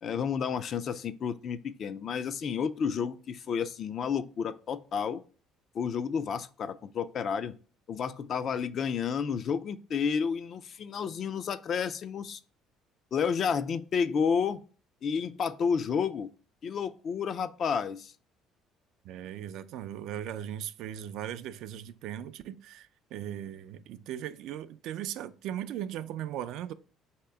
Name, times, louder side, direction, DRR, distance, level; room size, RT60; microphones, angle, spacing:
voice 1, 0.0-5.2 5.7-7.5 7.9-12.4 13.1-14.6 15.0-16.3 16.6-18.1, left 6 dB, 50° left, 0.4 m, -31 dB
voice 2, 19.0-26.7, right 11 dB, 70° right, 0.3 m, -38 dB
4.8 x 2.8 x 3.4 m
supercardioid pair, 95°, 0 cm